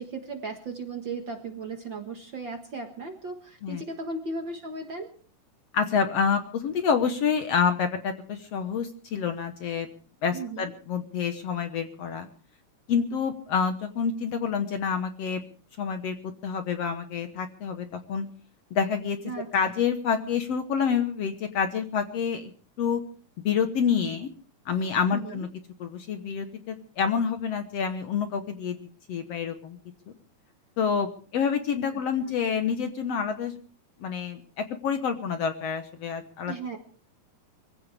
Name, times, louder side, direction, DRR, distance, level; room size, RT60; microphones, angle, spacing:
voice 1, 0.0-5.1 10.3-10.7 19.2-19.7 25.1-25.5 31.9-32.0 36.5-36.8, right 3 dB, 45° right, 4 dB, 1.7 m, -36 dB
voice 2, 5.7-9.9 10.2-12.3 12.9-15.4 15.8-18.3 18.7-19.2 19.5-22.5 22.8-23.0 23.4-24.3 24.7-25.5 25.8-28.8 29.1-29.8 30.8-33.6 34.0-36.8, left 6 dB, 60° left, 8 dB, 1.9 m, -28 dB
24.5 x 15.5 x 3.4 m, 0.40 s
omnidirectional pair, 3.8 m